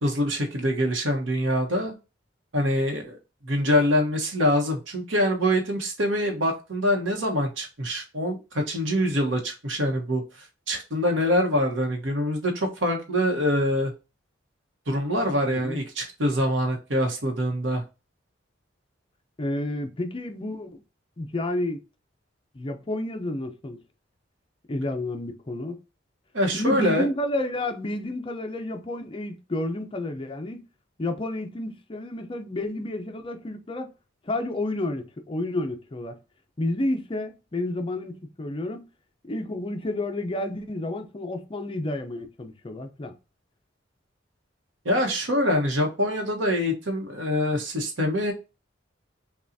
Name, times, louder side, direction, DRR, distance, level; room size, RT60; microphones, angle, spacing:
voice 1, 0.0-2.0 2.5-3.2 3.4-10.2 10.7-13.9 14.9-17.8 26.3-27.1 44.8-48.3, equal, 75° right, 1.0 m, -24 dB
voice 2, 19.4-20.8 21.2-21.8 22.5-23.8 24.7-25.8 26.5-30.6 31.0-33.9 34.2-36.2 36.6-38.9 39.2-43.1, left 1 dB, 30° left, 0.5 m, -30 dB
5.5 x 2.3 x 2.6 m
head